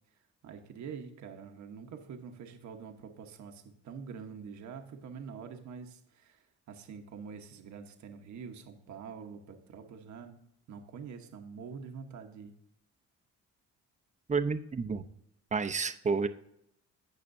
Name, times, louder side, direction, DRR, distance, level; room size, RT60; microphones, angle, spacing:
voice 1, 0.1-10.4 10.7-12.5, right 6 dB, 70° right, 4 dB, 1.1 m, -46 dB
voice 2, 14.3-15.0 15.5-16.3, right 5 dB, 25° right, 9 dB, 0.7 m, -30 dB
17.5 x 5.9 x 2.7 m, 0.76 s
cardioid pair, 90°, 30 cm